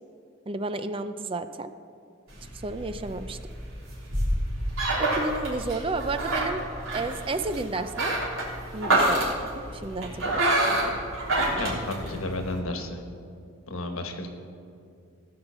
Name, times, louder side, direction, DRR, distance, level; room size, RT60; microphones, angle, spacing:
voice 1, 0.5-1.7 2.6-3.4 5.0-6.6 6.9-8.2 8.7-9.4 9.7-10.4, right 3 dB, 25° right, 10 dB, 0.4 m, -31 dB
sound 1, 2.3-12.6, right 1 dB, 80° right, 3.6 m, -28 dB
voice 2, 11.6-13.0 13.7-14.3, left 2 dB, 85° left, 5 dB, 1.4 m, -32 dB
16.5 x 5.8 x 6.9 m, 2.5 s
head